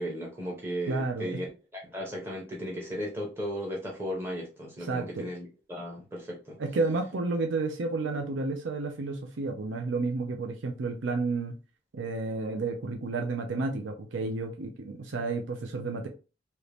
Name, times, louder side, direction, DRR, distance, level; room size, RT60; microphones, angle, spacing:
voice 1, 0.0-1.5 1.7-6.6, equal, 10° right, 0.8 m, -36 dB
voice 2, 0.9-1.4 4.8-5.3 6.6-11.5 11.9-16.1, right 3 dB, 80° right, 0.5 m, -31 dB
2.9 x 2.6 x 3.3 m
head